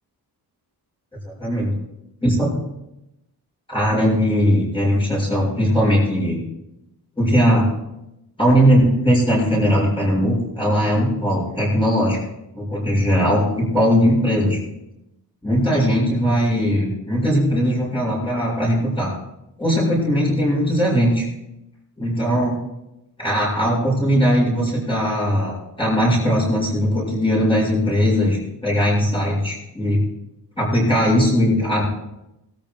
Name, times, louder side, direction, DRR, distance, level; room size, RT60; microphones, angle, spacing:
voice 1, 2.2-2.5 3.7-6.4 7.2-7.7 8.4-12.2 12.5-14.6 15.4-19.1 19.6-21.3 22.0-22.6 23.2-30.0 30.6-31.8, equal, 15° left, -8 dB, 6.0 m, -19 dB
20.5 x 13.5 x 2.3 m, 0.89 s
wide cardioid pair, 180°, 40 cm